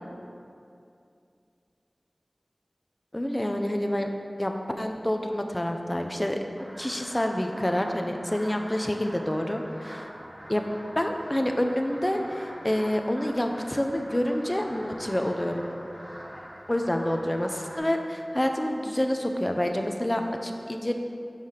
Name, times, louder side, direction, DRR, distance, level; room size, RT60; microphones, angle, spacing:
voice 1, 3.1-4.1 4.4-6.4 6.8-10.1 10.5-10.7 11.0-15.7 16.7-20.9, left 1 dB, 25° left, 4 dB, 0.4 m, -28 dB
sound 1, 6.5-17.8, equal, 35° right, 1.0 m, -44 dB
5.6 x 3.2 x 5.5 m, 2.5 s
wide cardioid pair, 45°, 0 cm